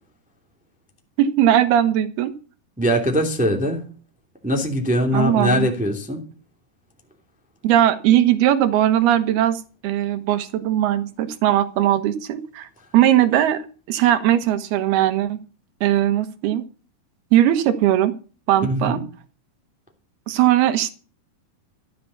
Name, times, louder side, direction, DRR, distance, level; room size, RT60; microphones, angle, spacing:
voice 1, 1.2-2.3 5.1-5.7 7.6-13.6 13.9-15.4 15.8-16.6 17.3-18.1 18.5-19.0 20.3-20.9, right 12 dB, 85° right, 10 dB, 3.4 m, -19 dB
voice 2, 2.8-3.8 4.4-6.2 18.6-19.0, equal, ahead, 3 dB, 2.2 m, -21 dB
15.0 x 9.4 x 7.0 m, 0.38 s
omnidirectional pair, 4.4 m